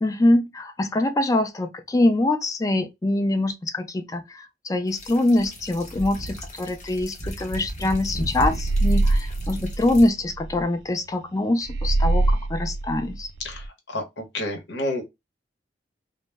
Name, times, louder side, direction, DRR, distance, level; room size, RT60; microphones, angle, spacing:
voice 1, 0.0-13.3, left 1 dB, 20° left, 0.3 m, -24 dB
sound 1, 4.9-10.1, equal, 40° left, 0.7 m, -33 dB
sound 2, 8.5-10.6 11.6-13.7, right 2 dB, 75° right, 0.3 m, -24 dB
voice 2, 13.4-15.0, left 1 dB, 80° left, 0.8 m, -30 dB
2.1 x 2.0 x 3.3 m
head